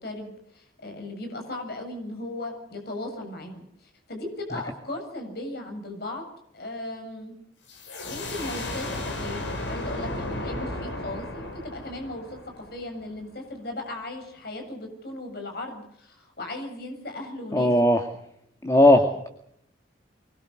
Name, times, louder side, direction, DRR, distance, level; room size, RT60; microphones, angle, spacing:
voice 1, 0.0-6.2 6.5-7.3 8.1-17.9, left 2 dB, 55° left, 4 dB, 7.5 m, -37 dB
sound 1, 7.7-13.2, left 1 dB, 75° left, 5.7 m, -34 dB
voice 2, 17.5-18.0 18.6-19.3, left 1 dB, 15° left, 5 dB, 2.1 m, -18 dB
25.0 x 21.5 x 6.5 m, 0.71 s
head